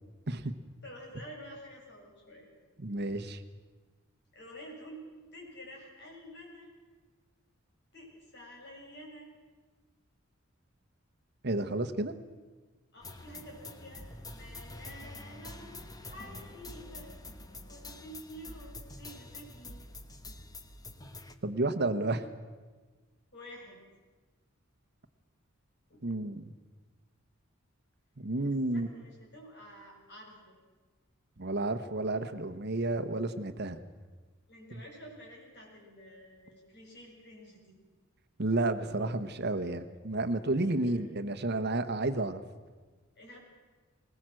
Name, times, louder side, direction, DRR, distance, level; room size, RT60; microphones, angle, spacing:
voice 1, 0.8-2.5 4.3-6.7 7.9-9.3 12.9-15.7 16.0-17.2 17.5-19.9 23.3-23.8 25.9-26.1 28.4-30.6 34.5-37.8 40.7-41.0 43.2-43.4, equal, 55° left, -1 dB, 7.0 m, -50 dB
voice 2, 2.8-3.4 11.4-12.1 21.4-22.2 26.0-26.4 28.2-28.9 31.4-33.8 34.7-34.8 38.4-42.4, right 2 dB, 55° right, 10 dB, 1.1 m, -31 dB
sound 1, 13.0-21.3, left 2 dB, 20° left, 1.2 m, -46 dB
21.0 x 20.0 x 7.7 m, 1.4 s
head